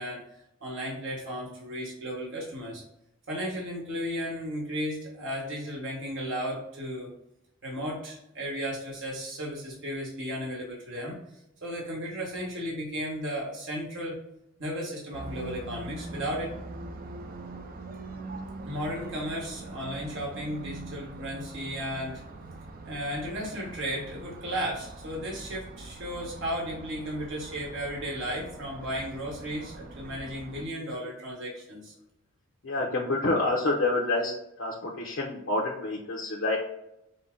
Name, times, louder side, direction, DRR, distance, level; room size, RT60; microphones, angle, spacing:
voice 1, 0.0-2.8 3.3-7.1 7.6-14.2 14.6-16.5 18.6-22.2 22.8-31.9, equal, 65° right, -3 dB, 1.2 m, -34 dB
sound 1, 15.1-30.7, right 2 dB, 45° right, 0.4 m, -43 dB
voice 2, 32.6-34.3 34.6-36.6, left 2 dB, 75° left, -3 dB, 0.7 m, -27 dB
5.5 x 2.1 x 3.6 m, 0.84 s
head